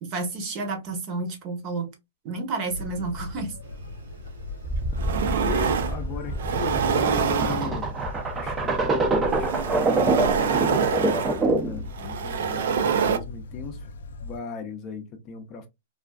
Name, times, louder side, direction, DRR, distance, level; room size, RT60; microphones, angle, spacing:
voice 1, 0.0-1.9 2.2-3.5, right 3 dB, 35° right, 0.8 m, -30 dB
sound 1, 2.7-14.4, left 2 dB, 85° left, 0.4 m, -39 dB
sound 2, 4.3-4.4 4.8-6.0 6.4-8.0 9.1-13.2, right 7 dB, 70° right, 0.4 m, -26 dB
sound 3, 4.6-11.8, right 2 dB, 15° right, 0.5 m, -26 dB
voice 2, 5.4-8.0 8.4-13.9 14.2-15.7, left 5 dB, 30° left, 0.5 m, -37 dB
2.4 x 2.3 x 2.2 m
hypercardioid pair, 145°, 0 cm